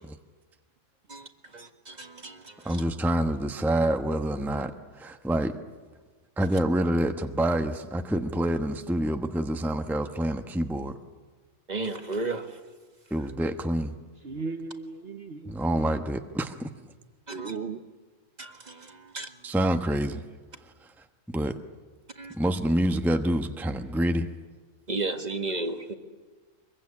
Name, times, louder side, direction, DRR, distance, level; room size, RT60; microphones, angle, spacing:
voice 1, 1.5-2.4 11.7-12.4 17.3-17.5 18.4-18.9 19.1-19.3 22.2-22.3 24.9-25.9, right 2 dB, 35° right, 7 dB, 1.8 m, -33 dB
voice 2, 2.6-5.6 6.4-11.0 13.1-14.0 15.5-16.7 19.4-20.2 21.3-21.6 22.3-24.3, right 1 dB, ahead, 7 dB, 1.0 m, -27 dB
voice 3, 14.2-15.8 17.3-17.8, right 4 dB, 55° right, 7 dB, 1.2 m, -36 dB
24.0 x 22.5 x 9.7 m, 1.4 s
omnidirectional pair, 1.3 m